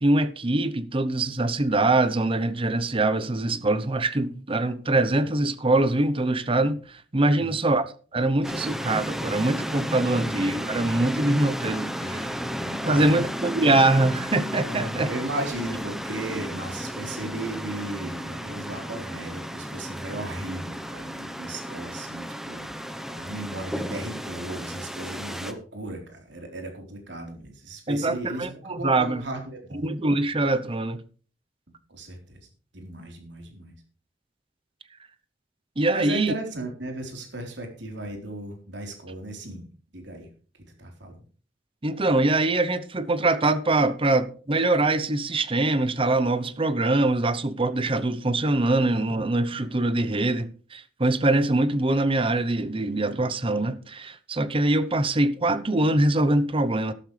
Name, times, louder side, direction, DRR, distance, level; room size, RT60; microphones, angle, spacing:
voice 1, 0.0-7.9 8.1-12.2 12.9-15.1 27.9-29.2 29.8-31.0 35.8-36.3 41.8-56.9, right 2 dB, 30° right, 0.8 m, -23 dB
voice 2, 7.3-7.7 12.0-13.2 14.7-22.7 23.1-29.8 31.9-32.4 32.7-33.7 35.9-39.7 39.9-40.3 40.8-41.2, right 1 dB, 70° right, 4.0 m, -36 dB
sound 1, 8.4-25.5, equal, ahead, 0.9 m, -33 dB
13.0 x 12.5 x 3.3 m
head